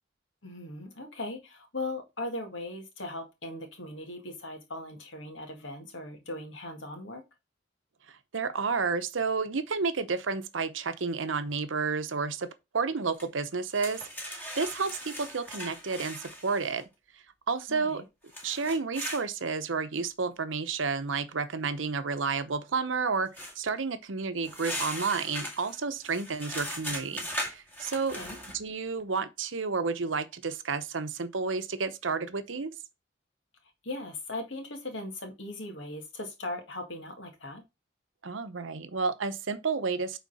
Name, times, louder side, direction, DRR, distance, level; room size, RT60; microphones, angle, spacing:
voice 1, 0.4-7.2 17.7-18.0 28.1-28.4 33.8-37.6, left 2 dB, 75° left, 1.9 m, -39 dB
voice 2, 8.3-12.5 12.7-16.8 17.5-18.0 18.4-28.2 28.5-32.7 38.2-40.2, right 4 dB, 80° right, 0.8 m, -31 dB
sound 1, 13.2-13.3 13.7-16.8 18.3-19.2 23.3-23.5 24.4-28.6, equal, 10° left, 1.8 m, -38 dB
8.4 x 4.0 x 4.1 m
head